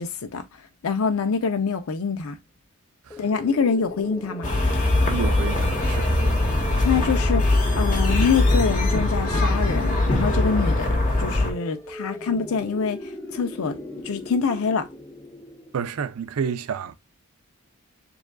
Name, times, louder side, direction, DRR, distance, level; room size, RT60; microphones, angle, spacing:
voice 1, 0.0-2.4 3.2-4.5 6.8-13.8 14.0-14.9, left 5 dB, 75° left, 0.6 m, -25 dB
sound 1, 3.1-15.9, left 1 dB, 10° left, 0.5 m, -38 dB
sound 2, 4.4-11.5, left 2 dB, 40° left, 1.5 m, -21 dB
voice 2, 5.1-6.2 15.7-16.9, right 6 dB, 85° right, 0.4 m, -30 dB
6.8 x 2.4 x 2.2 m
head